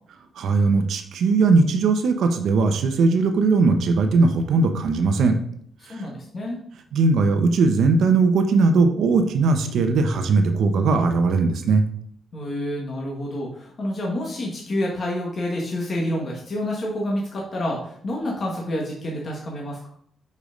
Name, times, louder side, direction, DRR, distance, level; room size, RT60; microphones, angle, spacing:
voice 1, 0.4-5.4 5.9-6.0 6.9-11.8, right 4 dB, 70° right, 6 dB, 0.8 m, -19 dB
voice 2, 5.8-6.6 12.3-19.9, left 1 dB, 35° left, -2 dB, 1.5 m, -28 dB
5.4 x 5.2 x 5.1 m, 0.65 s
cardioid pair, 155°, 0 cm